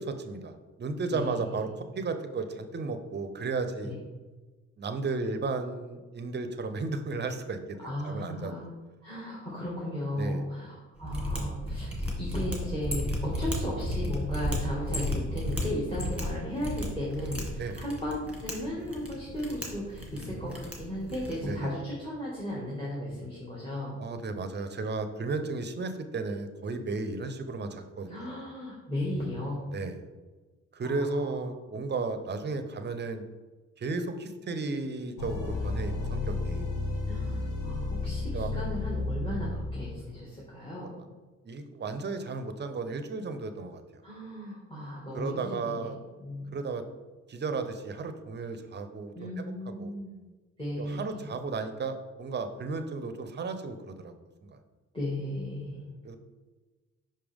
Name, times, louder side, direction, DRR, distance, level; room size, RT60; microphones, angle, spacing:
voice 1, 0.0-4.0 4.8-8.5 10.1-10.5 14.6-14.7 17.6-17.8 20.1-20.6 21.5-21.7 24.0-28.4 29.7-30.0 30.7-33.2 33.8-36.7 38.3-38.5 41.4-44.0 45.1-46.0 46.5-46.8 47.3-49.5 49.8-49.9 50.8-54.1 54.4-54.6 56.0-56.2, right 3 dB, 35° right, 8 dB, 0.7 m, -34 dB
voice 2, 1.1-1.6 3.8-4.0 7.8-8.7 9.0-24.0 28.1-29.7 30.8-31.2 37.1-40.9 44.0-46.6 49.1-50.1 50.6-51.1 54.9-55.9, left 1 dB, 15° left, -5 dB, 1.8 m, -35 dB
Mechanisms, 11.0-21.5, left 1 dB, 5° right, 1.8 m, -34 dB
sound 1, 35.2-40.1, left 3 dB, 85° left, 0.9 m, -32 dB
5.5 x 5.1 x 3.5 m, 1.3 s
cardioid pair, 90°, 30 cm